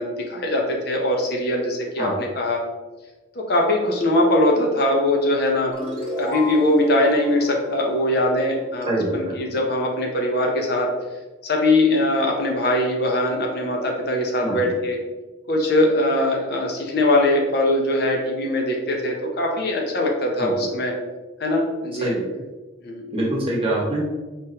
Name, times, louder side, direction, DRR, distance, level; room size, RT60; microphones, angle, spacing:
voice 1, 0.0-2.6 3.5-5.7 6.2-10.9 11.4-15.0 15.5-20.9 21.4-22.1 22.8-23.1, left 1 dB, 50° left, 0 dB, 0.6 m, -21 dB
sound 1, 5.7-8.9, left 1 dB, 30° left, 1.4 m, -34 dB
voice 2, 8.9-9.4 14.4-14.8 20.4-20.7 22.0-22.3 23.1-24.0, right 1 dB, 30° right, -4 dB, 1.0 m, -24 dB
4.8 x 3.0 x 2.8 m, 1.2 s
head